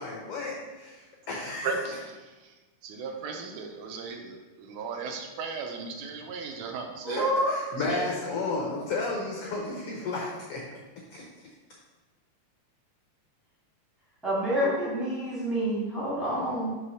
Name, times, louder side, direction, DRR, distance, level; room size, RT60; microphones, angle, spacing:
voice 1, 0.0-1.8 7.1-10.6 11.1-11.2, left 3 dB, 75° left, -3 dB, 1.3 m, -33 dB
voice 2, 1.6-2.1 2.8-7.3 7.9-8.0, right 4 dB, 75° right, 3 dB, 2.0 m, -36 dB
voice 3, 7.0-7.5 14.2-16.7, equal, ahead, -7 dB, 0.5 m, -28 dB
6.4 x 3.0 x 5.5 m, 1.2 s
omnidirectional pair, 3.8 m